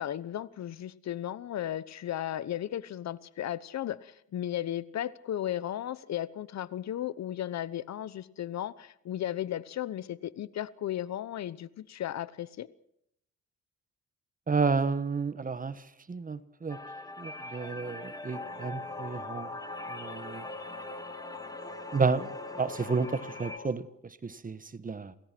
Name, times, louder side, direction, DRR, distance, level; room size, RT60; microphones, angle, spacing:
voice 1, 0.0-12.7, left 11 dB, 60° left, 17 dB, 1.0 m, -35 dB
voice 2, 14.5-16.8 17.2-19.5 19.9-20.4 21.9-22.3 22.6-25.2, right 4 dB, 30° right, 13 dB, 1.4 m, -31 dB
sound 1, 16.7-23.6, left 2 dB, 10° left, 1.7 m, -43 dB
sound 2, 18.3-23.7, left 2 dB, 35° left, 6.4 m, -44 dB
28.0 x 17.5 x 6.1 m, 0.76 s
cardioid pair, 90°, 30 cm